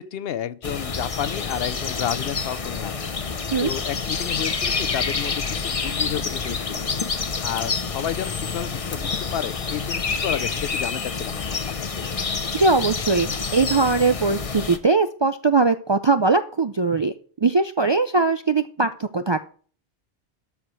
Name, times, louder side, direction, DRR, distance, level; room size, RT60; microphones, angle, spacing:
voice 1, 0.0-2.9 3.6-6.9 7.4-11.6, left 10 dB, 70° left, 0.8 m, -31 dB
sound 1, 0.6-14.8, left 5 dB, 35° left, 0.8 m, -28 dB
voice 2, 12.5-17.1 17.4-19.4, right 3 dB, 45° right, 0.3 m, -20 dB
13.0 x 4.8 x 6.1 m
omnidirectional pair, 1.0 m